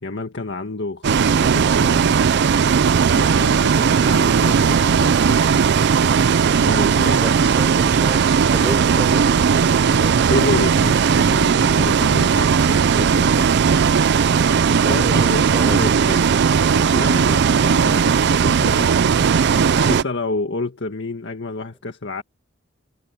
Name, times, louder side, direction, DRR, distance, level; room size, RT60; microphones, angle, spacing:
voice 1, 0.0-2.2 3.1-5.6 6.6-7.5 10.1-13.6 14.9-16.2 16.7-19.0 19.7-22.2, left 2 dB, 60° left, 1.8 m, -29 dB
Bus, 1.0-20.0, right 6 dB, 60° right, 0.4 m, -17 dB
voice 2, 7.2-10.5 14.8-15.9, right 1 dB, 10° right, 4.7 m, -31 dB
head